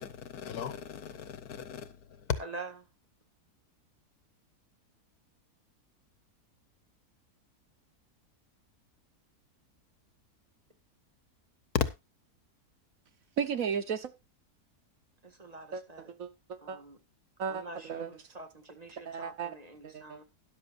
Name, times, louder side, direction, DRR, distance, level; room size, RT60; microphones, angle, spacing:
voice 1, 0.0-2.3 11.7-11.9, left 8 dB, 75° left, 1.4 m, -35 dB
voice 2, 2.4-2.8 15.2-16.1 16.6-17.0 17.5-20.2, right 2 dB, 25° right, 1.7 m, -46 dB
voice 3, 13.4-14.1 15.7-15.8 16.2-16.8 17.4-18.1 19.1-19.5 19.8-20.2, right 7 dB, 65° right, 1.3 m, -35 dB
13.0 x 11.0 x 2.5 m
omnidirectional pair, 1.6 m